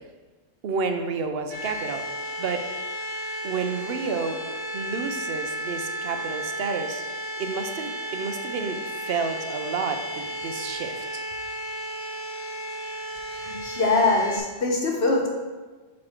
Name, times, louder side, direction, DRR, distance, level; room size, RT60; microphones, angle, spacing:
voice 1, 0.6-2.0 2.4-2.6 3.4-4.4 4.7-7.0 7.4-11.2, right 5 dB, 60° right, 7 dB, 0.8 m, -30 dB
sound 1, 1.5-14.4, equal, 25° right, 0.9 m, -33 dB
voice 2, 13.4-15.3, left 3 dB, 60° left, 0 dB, 1.3 m, -23 dB
6.3 x 4.2 x 4.4 m, 1.3 s
omnidirectional pair, 1.2 m